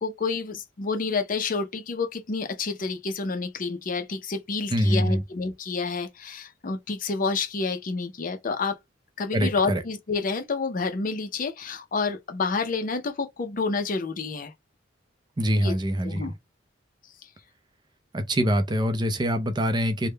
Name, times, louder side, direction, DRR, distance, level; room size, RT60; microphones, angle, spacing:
voice 1, 0.0-8.8 9.2-14.5 15.6-15.7 16.0-16.3, left 4 dB, 45° left, 0.5 m, -29 dB
voice 2, 4.7-5.2 9.3-9.8 15.4-16.2 18.1-20.1, equal, 25° right, 0.5 m, -24 dB
3.5 x 2.1 x 3.2 m
head